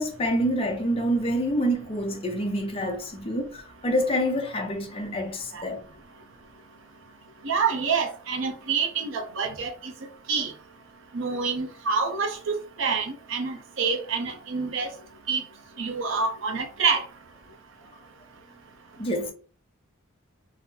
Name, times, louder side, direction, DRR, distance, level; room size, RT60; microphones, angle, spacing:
voice 1, 0.0-5.8 19.0-19.3, equal, 30° left, 0.7 m, -27 dB
voice 2, 7.4-9.9 10.3-10.5 11.1-14.9 15.3-15.4 15.8-17.0, right 5 dB, 65° right, 0.7 m, -27 dB
3.9 x 2.1 x 2.7 m
head